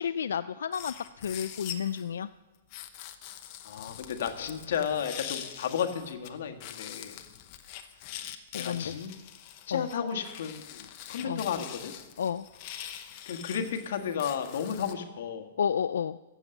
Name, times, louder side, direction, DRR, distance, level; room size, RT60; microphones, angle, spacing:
voice 1, 0.0-2.3 8.5-9.0 9.7-9.9 11.2-11.4 12.2-12.5 15.6-16.2, left 8 dB, 90° left, 12 dB, 0.3 m, -31 dB
sound 1, 0.7-2.1 2.7-6.3 6.6-14.9, left 11 dB, 30° left, 0.8 m, -44 dB
voice 2, 3.6-7.2 8.6-9.1 9.7-11.9 13.2-15.5, left 7 dB, 60° left, 6 dB, 1.5 m, -33 dB
15.5 x 7.2 x 7.0 m, 1.1 s
hypercardioid pair, 170°, 0 cm